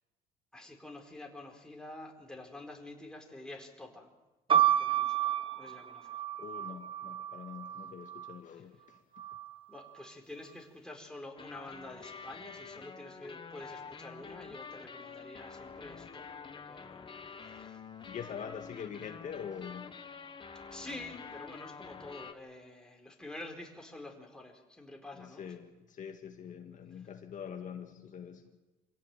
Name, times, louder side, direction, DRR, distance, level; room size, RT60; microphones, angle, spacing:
voice 1, 0.5-4.1 4.8-6.2 8.5-8.6 9.7-17.1 17.4-17.8 20.7-25.5, left 2 dB, 5° left, 1 dB, 4.6 m, -48 dB
sound 1, 4.5-8.3 9.2-9.9, right 10 dB, 30° right, 1.0 m, -31 dB
voice 2, 6.4-9.0 18.1-19.9 25.1-28.6, left 7 dB, 50° left, 4 dB, 2.0 m, -44 dB
sound 2, 11.4-22.3, left 5 dB, 30° left, 1.7 m, -48 dB
26.5 x 17.0 x 9.2 m, 1.1 s
cardioid pair, 110°, 17 cm